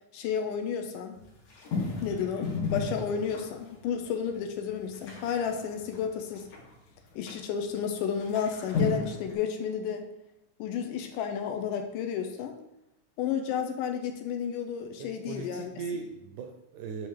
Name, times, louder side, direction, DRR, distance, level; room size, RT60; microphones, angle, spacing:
voice 1, 0.1-1.2 2.0-6.5 7.2-10.1 10.6-12.6 13.2-15.7, left 7 dB, 85° left, 5 dB, 2.2 m, -32 dB
sound 1, 1.2-3.7 4.2-4.3 4.5-6.7 7.3-7.4 7.7-7.8 8.2-9.3, left 4 dB, 70° left, 2.9 m, -33 dB
voice 2, 15.0-17.1, right 5 dB, 80° right, 4 dB, 1.7 m, -38 dB
8.7 x 3.0 x 3.6 m, 0.91 s
omnidirectional pair, 3.7 m